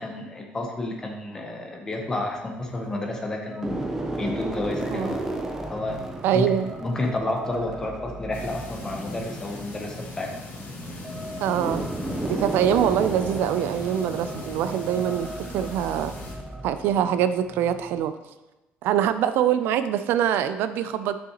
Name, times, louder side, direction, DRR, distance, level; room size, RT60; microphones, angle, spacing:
voice 1, 0.0-3.9 4.2-5.3 5.7-6.0 6.3-6.5 6.8-10.3, left 2 dB, 15° left, 2 dB, 0.8 m, -30 dB
sound 1, 2.2-3.0 3.5-18.1, right 1 dB, 10° right, 0.5 m, -34 dB
voice 2, 6.2-6.7 11.4-11.8 12.2-16.1 16.6-18.1 18.8-21.1, right 10 dB, 75° right, 12 dB, 0.3 m, -24 dB
sound 2, 8.3-16.3, left 1 dB, 50° left, 1.6 m, -38 dB
6.3 x 5.5 x 2.9 m, 1.0 s
cardioid pair, 170°, 4 cm